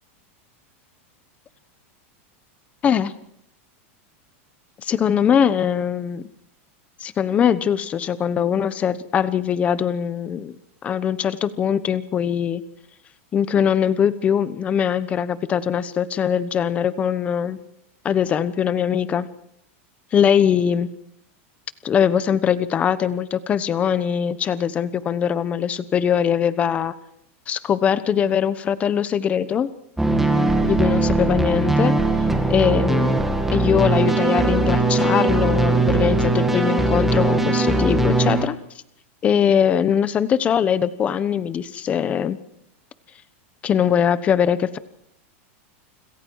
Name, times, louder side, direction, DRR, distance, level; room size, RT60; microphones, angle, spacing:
voice 1, 4.8-6.3 7.0-10.6 10.8-12.6 13.3-17.6 18.0-19.3 20.1-20.9 21.8-26.9 27.5-29.7 30.6-31.9 32.5-38.5 39.2-42.4 43.6-44.8, left 8 dB, 20° left, 15 dB, 1.1 m, -21 dB
sound 1, 30.0-38.5, right 2 dB, 5° right, 2.2 m, -20 dB
29.0 x 26.5 x 4.8 m, 0.75 s
supercardioid pair, 170°, 7 cm